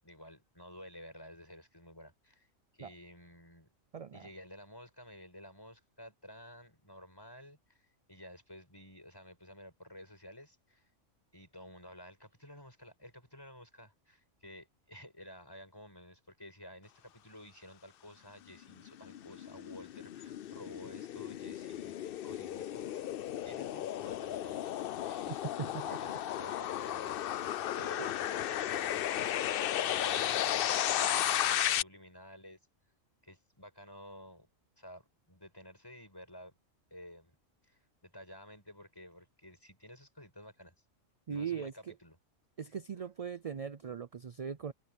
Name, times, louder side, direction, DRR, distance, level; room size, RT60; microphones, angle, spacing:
voice 1, 0.0-2.5 2.7-3.7 4.1-10.9 11.3-23.1 23.4-24.7 25.0-25.5 25.8-27.1 27.7-32.6 33.2-34.5 34.8-36.5 36.9-37.3 37.6-40.7 41.3-42.2, equal, 20° left, 6.7 m, -52 dB
sound 1, 18.6-31.8, left 11 dB, 60° left, 0.6 m, -34 dB
voice 2, 25.3-25.9 27.6-27.7 28.0-28.1 41.3-41.9 42.6-44.7, right 7 dB, 50° right, 0.4 m, -39 dB
omnidirectional pair, 1.3 m